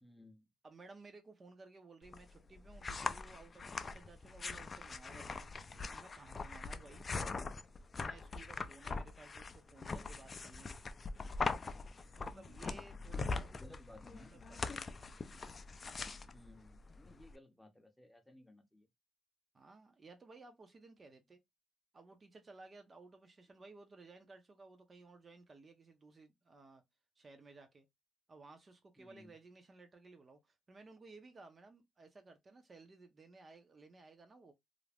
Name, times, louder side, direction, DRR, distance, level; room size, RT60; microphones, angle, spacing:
voice 1, 0.0-0.5 13.1-14.4 16.3-18.9 29.0-29.3, left 1 dB, 5° left, 0.7 m, -59 dB
voice 2, 0.6-7.1 8.0-10.8 12.3-13.5 14.3-15.0 19.5-21.4 21.9-26.8 27.2-27.9 28.3-34.5, right 3 dB, 35° right, 0.6 m, -57 dB
sound 1, 2.0-17.3, left 4 dB, 35° left, 0.3 m, -42 dB
2.5 x 2.0 x 3.3 m
cardioid pair, 90°, 0 cm